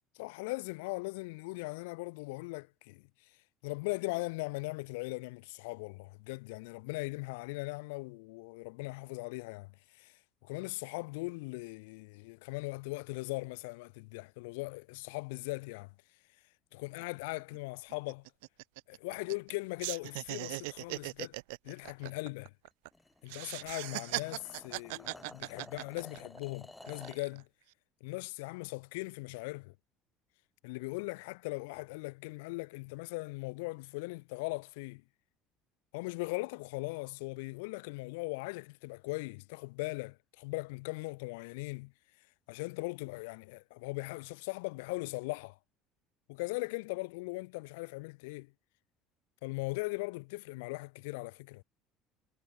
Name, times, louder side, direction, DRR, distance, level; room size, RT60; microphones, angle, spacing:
voice 1, 0.1-3.4 3.6-15.9 16.7-18.3 18.9-21.3 21.6-22.5 23.2-27.5 28.0-29.7 30.6-35.0 35.9-41.9 42.5-45.6 46.3-48.5 49.4-51.6, left 26 dB, 85° left, 1.2 m, -39 dB
sound 1, 17.0-17.1 17.4-17.6 17.9-19.5 19.8-22.9 23.3-26.4 26.8-27.4, right 27 dB, 85° right, 0.5 m, -40 dB
sound 2, 22.9-27.3, left 2 dB, 10° left, 3.4 m, -53 dB
supercardioid pair, 100°, 0 cm